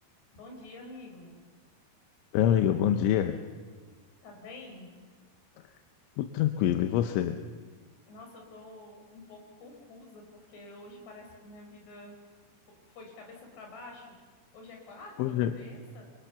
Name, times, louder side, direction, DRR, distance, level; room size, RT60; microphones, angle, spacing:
voice 1, 0.3-1.4 4.2-4.9 8.0-12.2 12.9-14.2 14.5-16.0, left 2 dB, 65° left, 2 dB, 7.2 m, -48 dB
voice 2, 2.3-3.4 6.2-7.4 15.2-15.5, left 10 dB, 85° left, 7 dB, 3.3 m, -25 dB
27.0 x 24.5 x 7.1 m, 1.4 s
omnidirectional pair, 5.3 m